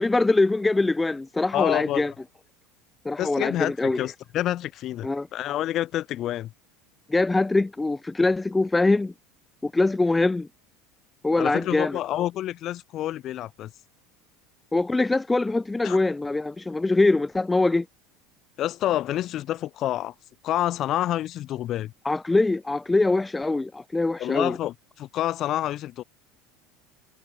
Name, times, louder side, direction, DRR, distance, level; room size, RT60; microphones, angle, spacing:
voice 1, 0.0-2.1 3.0-4.0 5.0-5.3 7.1-9.1 9.6-10.5 11.2-12.0 14.7-17.9 22.0-24.6, left 2 dB, 10° left, 2.7 m, -23 dB
voice 2, 1.5-2.1 3.2-6.5 11.4-13.7 15.8-16.0 18.6-20.1 20.4-21.9 24.2-26.0, left 13 dB, 50° left, 6.8 m, -28 dB
hypercardioid pair, 85°, 0 cm